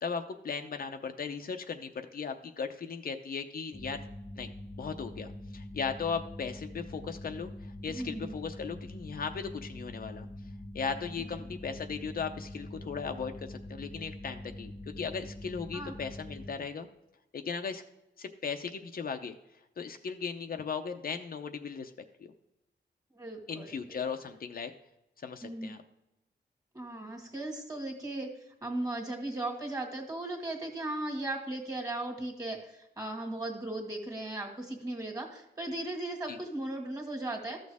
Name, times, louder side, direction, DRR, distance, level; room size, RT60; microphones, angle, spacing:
voice 1, 0.0-4.0 4.4-4.5 4.8-10.3 10.7-16.9 17.3-17.8 18.2-19.3 19.8-21.9 22.2-22.3 23.5-24.7 25.2-25.8 36.3-36.4, left 5 dB, 55° left, 6 dB, 0.7 m, -37 dB
sound 1, 3.7-16.5, left 1 dB, 25° left, 0.8 m, -44 dB
voice 2, 7.9-8.4 11.2-11.5 15.7-15.9 23.1-24.0 25.4-25.7 26.7-28.3 28.6-37.6, right 2 dB, 20° right, 3 dB, 2.0 m, -37 dB
13.0 x 6.4 x 3.5 m, 0.91 s
wide cardioid pair, 110°, 18 cm